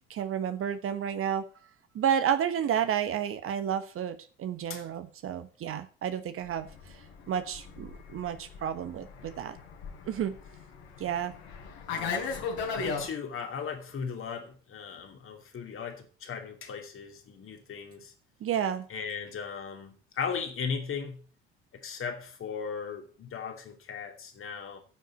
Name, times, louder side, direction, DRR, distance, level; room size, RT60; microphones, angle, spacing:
voice 1, 0.1-1.4 1.9-6.7 7.3-9.6 10.1-10.4 11.0-11.3 18.4-18.8, right 9 dB, 45° right, 11 dB, 1.2 m, -31 dB
Fixed-wing aircraft airplane, 6.6-13.1, left 5 dB, 65° left, 3.4 m, -37 dB
voice 2, 11.9-12.5 12.8-18.1 18.9-21.2 21.7-24.8, left 6 dB, 45° left, 5 dB, 2.6 m, -37 dB
9.5 x 6.5 x 8.2 m, 0.40 s
figure-of-eight pair, 60°, 31 cm